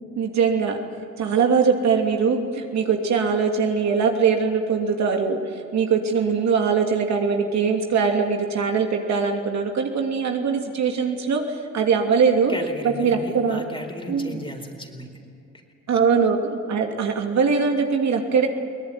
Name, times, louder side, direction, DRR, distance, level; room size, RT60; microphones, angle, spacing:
voice 1, 0.1-0.8 1.2-12.6 13.0-13.6 14.1-14.4 15.9-18.5, right 5 dB, 65° right, 3 dB, 2.8 m, -22 dB
voice 2, 12.2-15.2, left 1 dB, 15° left, 4 dB, 4.3 m, -36 dB
22.5 x 18.5 x 9.9 m, 2.6 s
cardioid pair, 90°, 30 cm